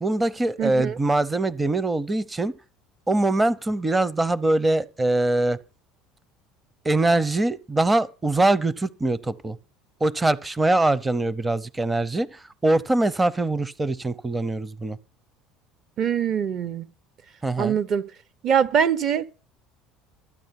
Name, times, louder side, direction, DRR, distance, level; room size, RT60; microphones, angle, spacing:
voice 1, 0.0-2.5 3.1-5.6 6.8-9.6 10.0-15.0 17.4-17.8, right 2 dB, 15° right, 0.7 m, -23 dB
voice 2, 0.6-1.0 16.0-16.9 17.6-18.0 18.4-19.4, right 8 dB, 50° right, 1.0 m, -23 dB
13.5 x 9.1 x 5.8 m
supercardioid pair, 105°, 0 cm